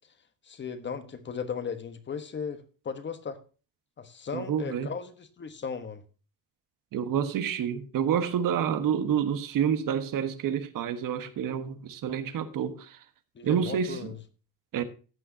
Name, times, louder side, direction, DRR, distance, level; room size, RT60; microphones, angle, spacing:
voice 1, 0.4-3.4 4.0-6.0 13.3-14.2, left 6 dB, 35° left, 1.2 m, -36 dB
voice 2, 4.3-4.9 6.9-13.0 13.4-14.1 14.7-14.8, right 8 dB, 70° right, 1.4 m, -28 dB
14.0 x 8.9 x 2.8 m
cardioid pair, 175°, 34 cm